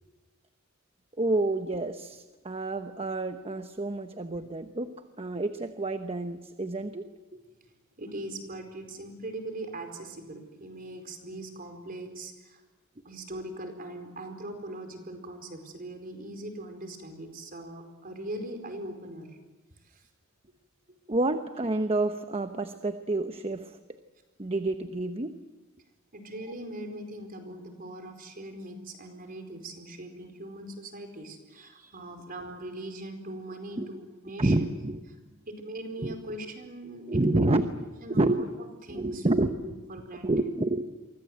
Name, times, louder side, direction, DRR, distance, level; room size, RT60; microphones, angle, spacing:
voice 1, 1.2-4.9 5.2-7.1 21.1-23.8 24.4-25.3 33.8-33.9 34.4-35.0 36.0-36.1 37.1-39.6 40.2-40.9, right 2 dB, 30° right, 8 dB, 1.0 m, -29 dB
voice 2, 8.0-12.6 13.0-19.3 19.9-20.0 26.1-34.7 35.5-37.0 37.3-37.7 38.0-38.5 38.8-40.3, right 1 dB, 45° right, 5 dB, 4.6 m, -41 dB
28.5 x 24.5 x 7.9 m, 1.2 s
head